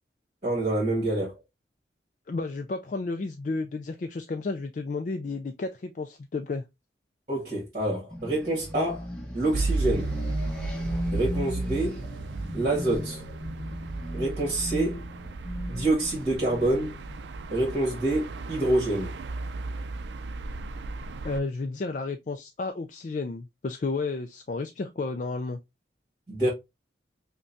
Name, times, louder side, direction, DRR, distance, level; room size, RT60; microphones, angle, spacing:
voice 1, 0.4-1.4 7.3-9.1 9.3-10.2 11.1-12.0 12.5-13.2 14.1-15.0 15.7-17.0 17.5-19.2 26.3-26.5, right 1 dB, 35° right, 1.6 m, -27 dB
voice 2, 2.3-6.6 21.2-25.6, left 3 dB, 45° left, 0.3 m, -32 dB
sound 1, 8.1-18.8, equal, 5° left, 0.9 m, -38 dB
sound 2, 9.5-21.4, right 3 dB, 80° right, 0.4 m, -34 dB
5.3 x 2.2 x 2.6 m
head